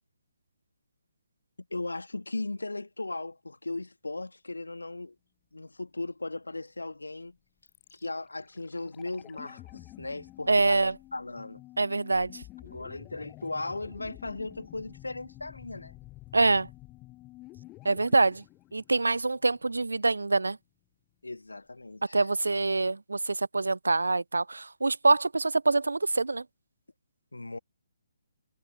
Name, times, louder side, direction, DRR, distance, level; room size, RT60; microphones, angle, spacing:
voice 1, 1.7-5.2 5.5-7.4 7.9-11.6 12.6-15.9 21.2-22.3 27.3-27.6, left 2 dB, 75° left, 1.8 m, -37 dB
sound 1, 7.7-19.7 19.9-20.0, left 18 dB, 20° left, 7.7 m, -50 dB
voice 2, 10.5-10.9 11.8-12.4 16.3-16.7 17.8-18.4 18.7-20.6 22.1-26.4, right 3 dB, 70° right, 0.4 m, -25 dB
figure-of-eight pair, 135°, 0 cm